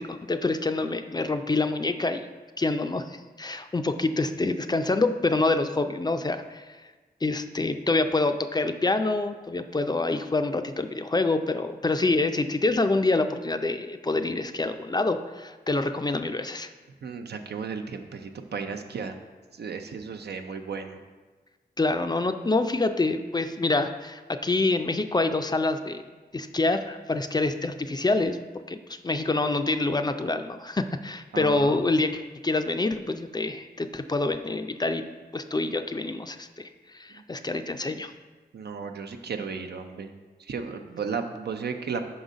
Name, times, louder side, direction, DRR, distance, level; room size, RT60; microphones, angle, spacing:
voice 1, 0.0-2.3 2.6-6.6 7.2-16.7 21.8-26.0 26.3-28.4 28.7-35.0 35.3-36.7 36.9-38.1, left 2 dB, 25° left, 8 dB, 0.4 m, -26 dB
voice 2, 17.0-19.2 19.5-21.0 31.3-31.8 37.1-37.2 38.5-40.1 40.4-42.0, right 5 dB, 80° right, 6 dB, 0.5 m, -34 dB
5.4 x 3.9 x 5.0 m, 1.3 s
cardioid pair, 45°, 17 cm